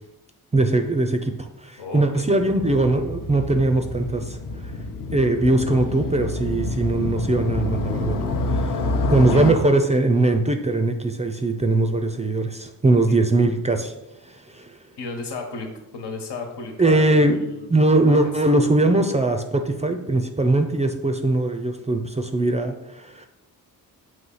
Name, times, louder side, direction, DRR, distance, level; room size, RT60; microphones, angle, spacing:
voice 1, 0.5-4.4 4.6-4.8 5.1-8.2 8.5-8.7 9.1-13.9 14.2-14.8 16.8-17.5 17.7-23.3, right 2 dB, 20° right, 6 dB, 0.3 m, -21 dB
voice 2, 1.8-2.4 9.3-9.4 15.0-17.7 18.2-18.3, left 3 dB, 85° left, 3 dB, 1.5 m, -34 dB
Motorcycle, 2.1-9.5, left 3 dB, 55° left, 0.7 m, -27 dB
7.6 x 3.2 x 5.5 m, 0.96 s
wide cardioid pair, 160°, 40 cm